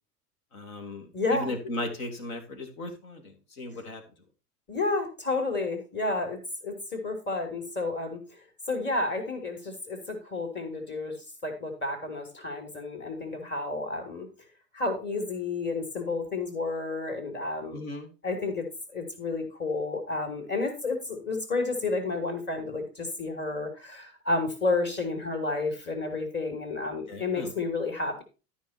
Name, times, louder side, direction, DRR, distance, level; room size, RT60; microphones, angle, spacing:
voice 1, 0.5-3.2 3.6-4.0 17.7-18.1 27.1-27.5, left 2 dB, 60° left, 6 dB, 2.5 m, -36 dB
voice 2, 1.1-1.5 4.7-8.2 8.7-11.2 11.4-14.3 14.7-17.8 18.2-18.7 18.9-28.2, left 3 dB, 25° left, 5 dB, 3.2 m, -31 dB
13.0 x 5.6 x 4.4 m, 0.32 s
figure-of-eight pair, 75°, 46 cm